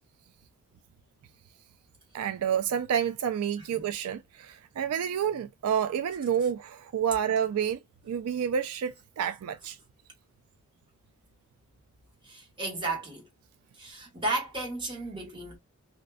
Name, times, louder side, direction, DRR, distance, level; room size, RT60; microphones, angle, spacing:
voice 1, 2.1-7.8 8.0-9.8, right 8 dB, 80° right, 0.3 m, -29 dB
voice 2, 12.3-13.3 13.8-15.6, right 2 dB, 20° right, 1.3 m, -33 dB
2.5 x 2.2 x 2.3 m
head